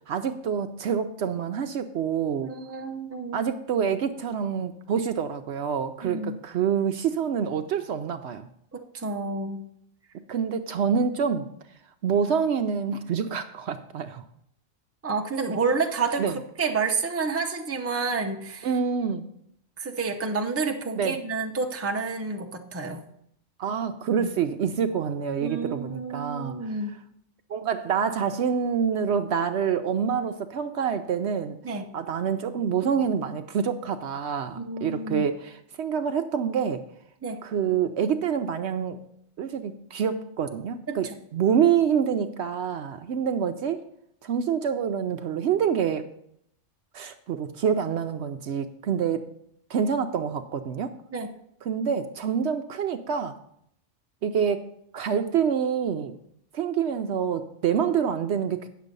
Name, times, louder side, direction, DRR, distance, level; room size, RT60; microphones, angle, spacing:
voice 1, 0.1-2.5 3.3-8.5 10.3-11.5 12.0-14.2 16.2-16.4 18.6-19.2 21.0-21.2 23.6-26.6 27.5-31.6 31.9-35.5 35.8-36.8 37.4-39.0 39.4-43.8 44.2-46.0 46.9-49.3 49.7-50.9 51.7-53.4 54.2-56.2 56.5-58.7, right 7 dB, 65° right, 8 dB, 0.8 m, -26 dB
voice 2, 2.4-3.4 6.0-6.4 8.7-9.7 15.0-16.2 16.6-18.7 19.8-23.0 24.2-24.3 25.4-27.0 31.6-31.9 34.6-35.3 37.2-37.4 40.9-41.1 51.1-51.3, right 4 dB, 15° right, 3 dB, 0.6 m, -29 dB
9.3 x 6.8 x 5.3 m, 0.72 s
omnidirectional pair, 1.3 m